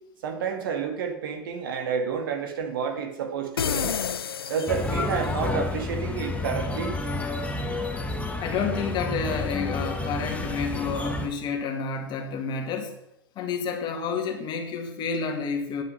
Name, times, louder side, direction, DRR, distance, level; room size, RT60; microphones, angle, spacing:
voice 1, 0.2-3.9 4.5-7.0, right 6 dB, 65° right, 5 dB, 2.0 m, -30 dB
sound 1, 3.6-5.4, left 7 dB, 85° left, 0.4 m, -30 dB
sound 2, 4.7-11.3, left 2 dB, 10° left, 1.4 m, -30 dB
voice 2, 8.4-13.0 13.4-15.8, left 5 dB, 40° left, 4 dB, 2.0 m, -30 dB
9.5 x 8.1 x 5.6 m, 0.82 s
figure-of-eight pair, 95°, 12 cm